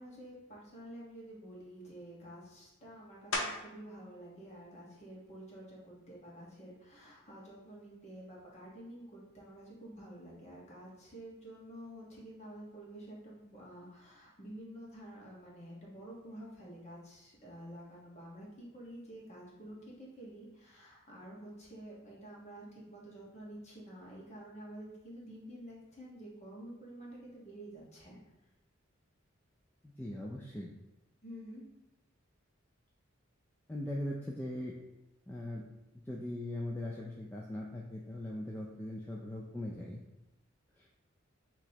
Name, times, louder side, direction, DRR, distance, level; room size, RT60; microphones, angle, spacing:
voice 1, 0.0-28.2 31.2-31.6, right 1 dB, 35° left, -4 dB, 1.3 m, -49 dB
sound 1, 3.3-3.9 4.5-8.9 9.4-14.6 14.9-20.5, left 2 dB, 85° left, 0.7 m, -47 dB
voice 2, 30.0-30.7 33.7-34.7 35.3-35.6 36.1-40.0, left 1 dB, 10° left, -3 dB, 0.3 m, -40 dB
6.0 x 2.9 x 2.9 m, 0.97 s
head